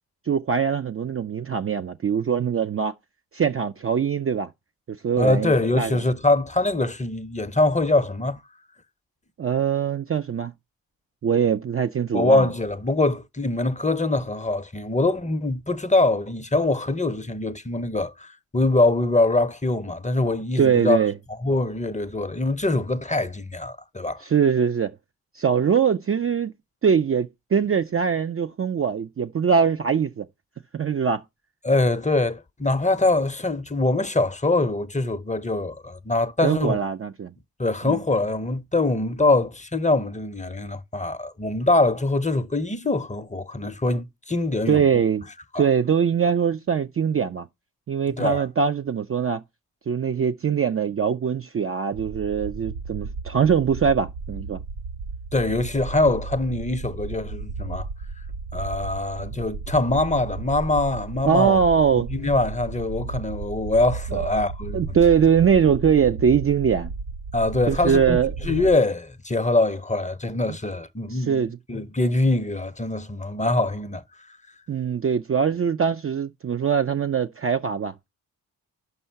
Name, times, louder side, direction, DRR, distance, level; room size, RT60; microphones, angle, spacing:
voice 1, 0.3-2.9 3.3-4.5 5.0-6.0 9.4-10.5 11.2-12.5 20.6-21.1 24.2-24.9 25.4-26.5 26.8-30.3 30.7-31.2 36.4-37.3 37.8-38.0 44.7-45.3 45.6-47.5 47.9-49.4 49.9-54.6 61.3-62.1 64.1-64.3 64.7-66.9 67.7-68.3 71.1-71.6 74.7-78.1, right 7 dB, 35° right, 0.4 m, -22 dB
voice 2, 5.2-8.4 12.1-21.0 21.4-24.2 31.6-36.8 37.6-44.9 45.5-45.6 48.1-48.4 55.3-57.9 58.5-61.6 61.9-65.0 67.3-68.2 68.4-71.4 71.7-74.0, left 2 dB, 15° left, 0.6 m, -23 dB
sound 1, 51.9-68.8, right 4 dB, 80° right, 0.7 m, -34 dB
5.5 x 5.5 x 5.6 m
cardioid pair, 45°, 43 cm